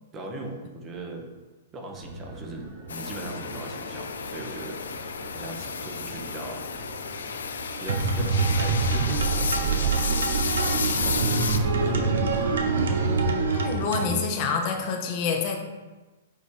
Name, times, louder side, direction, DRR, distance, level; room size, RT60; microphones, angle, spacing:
voice 1, 0.1-1.3 1.7-4.8 5.3-6.7 7.8-10.3 10.6-11.4 11.9-12.5, right 2 dB, 20° right, 2 dB, 1.1 m, -39 dB
sound 1, 1.9-13.5, right 3 dB, 40° right, 1.0 m, -40 dB
sound 2, 2.9-11.6, left 6 dB, 85° left, 0.5 m, -32 dB
sound 3, 7.9-14.2, right 4 dB, 80° right, 0.9 m, -25 dB
voice 2, 13.5-15.6, left 5 dB, 45° left, 3 dB, 0.9 m, -27 dB
8.2 x 2.9 x 4.9 m, 1.2 s
hypercardioid pair, 130°, 0 cm